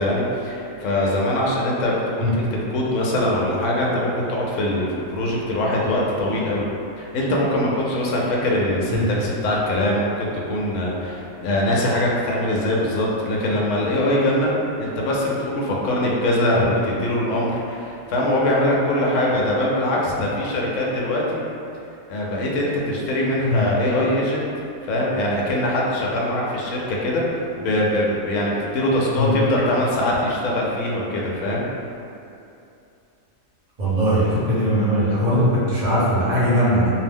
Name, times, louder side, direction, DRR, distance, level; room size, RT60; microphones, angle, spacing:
voice 1, 0.0-6.6 7.0-14.5 14.8-21.4 22.1-24.4 24.8-31.7, left 1 dB, 70° left, -4 dB, 0.8 m, -22 dB
voice 2, 33.8-36.9, equal, 35° right, -10 dB, 0.9 m, -20 dB
2.6 x 2.0 x 3.4 m, 2.7 s
omnidirectional pair, 1.5 m